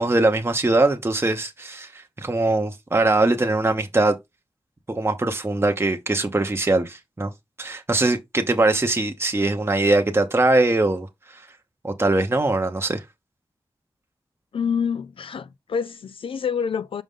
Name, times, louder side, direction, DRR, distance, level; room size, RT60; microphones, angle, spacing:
voice 1, 0.0-4.1 4.9-7.3 7.6-11.5 11.8-13.0, right 2 dB, 25° right, 0.8 m, -21 dB
voice 2, 14.5-17.0, left 6 dB, 75° left, 0.4 m, -27 dB
5.3 x 5.1 x 3.6 m
cardioid pair, 50°, 9 cm